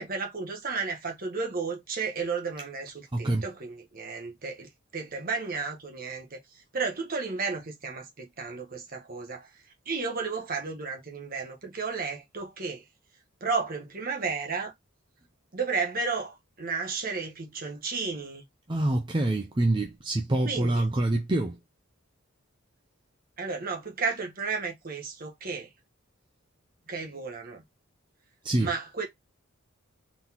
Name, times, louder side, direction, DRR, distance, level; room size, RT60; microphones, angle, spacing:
voice 1, 0.0-6.4 6.7-9.5 9.9-12.8 13.4-14.7 15.5-18.4 20.4-20.8 23.4-25.7 26.9-27.6 28.6-29.1, right 4 dB, 45° right, 1.2 m, -33 dB
voice 2, 3.1-3.4 18.7-21.6 28.4-28.7, right 1 dB, 20° right, 0.5 m, -26 dB
4.0 x 3.8 x 2.9 m
head